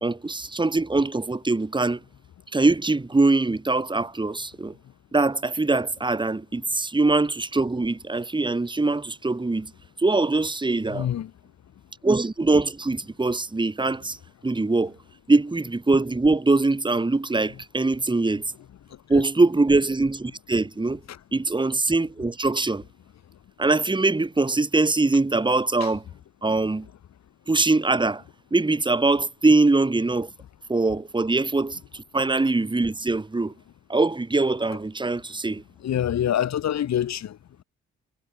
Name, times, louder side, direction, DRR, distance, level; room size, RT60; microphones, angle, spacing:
voice 1, 0.0-2.0 2.5-4.7 5.1-9.7 10.0-11.1 12.0-14.2 14.4-15.0 15.3-18.4 19.1-21.0 21.3-22.8 23.6-26.0 26.4-26.9 27.5-28.2 28.5-30.3 30.7-33.5 33.9-35.6, right 3 dB, 15° right, 2.3 m, -22 dB
voice 2, 10.9-11.3 35.8-37.4, left 10 dB, 60° left, 2.4 m, -25 dB
cardioid pair, 90°, 30 cm